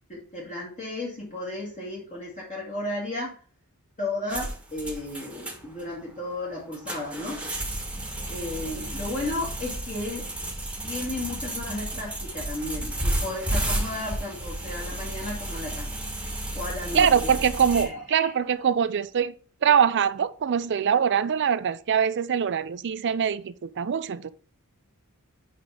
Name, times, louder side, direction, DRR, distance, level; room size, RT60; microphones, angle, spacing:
voice 1, 0.1-3.3 4.0-7.4 8.3-10.3 10.8-16.0 16.5-17.3 17.7-18.3 18.6-18.7, left 2 dB, 35° left, 1.9 m, -34 dB
sound 1, 4.3-17.8, right 1 dB, 5° right, 1.3 m, -32 dB
voice 2, 16.9-19.3 19.6-24.3, right 7 dB, 55° right, 0.4 m, -23 dB
5.1 x 4.7 x 5.4 m
head